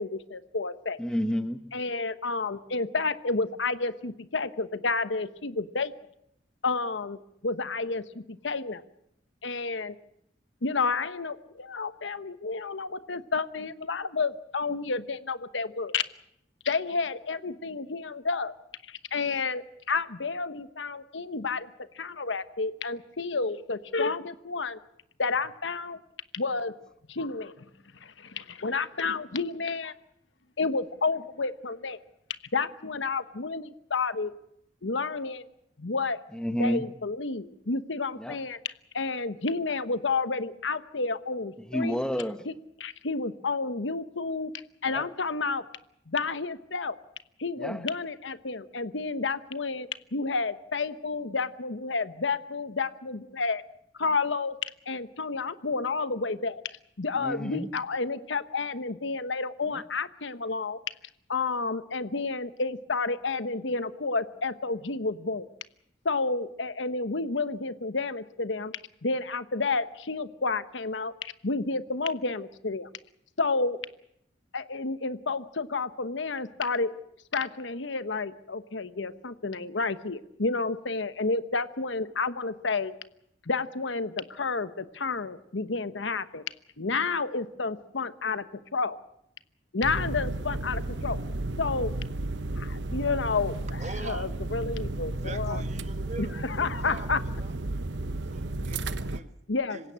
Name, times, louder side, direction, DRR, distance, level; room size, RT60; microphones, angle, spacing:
voice 1, 0.0-1.0 1.7-5.9 6.6-8.8 9.4-9.9 10.6-16.0 16.6-18.5 18.9-21.7 21.9-24.8 25.2-26.0 26.3-26.7 27.1-27.5 28.0-29.9 30.6-32.0 32.5-34.3 34.8-35.5 35.8-36.2 36.6-38.6 38.9-42.0 42.8-44.5 44.8-45.6 46.1-47.0 47.4-53.6 54.0-56.6 57.0-60.8 61.3-65.5 66.0-68.7 69.0-72.9 73.4-73.8 74.5-76.9 77.3-82.9 83.5-86.4 86.8-89.0 89.7-91.2 91.6-91.9 92.6-93.6 94.0-95.6 96.2-97.2 99.5-99.9, left 4 dB, 90° left, 12 dB, 1.1 m, -30 dB
voice 2, 1.0-1.6 36.3-36.9 38.2-38.4 41.6-42.5 44.9-45.1 47.6-47.9 57.1-57.7 59.7-59.8, equal, 5° left, 8 dB, 1.3 m, -30 dB
sound 1, 89.8-99.2, right 2 dB, 75° right, 1.0 m, -33 dB
voice 3, 93.8-94.3 95.1-97.6 98.3-99.4 99.7-99.9, right 3 dB, 40° right, 10 dB, 1.3 m, -43 dB
26.0 x 16.5 x 8.7 m, 0.77 s
head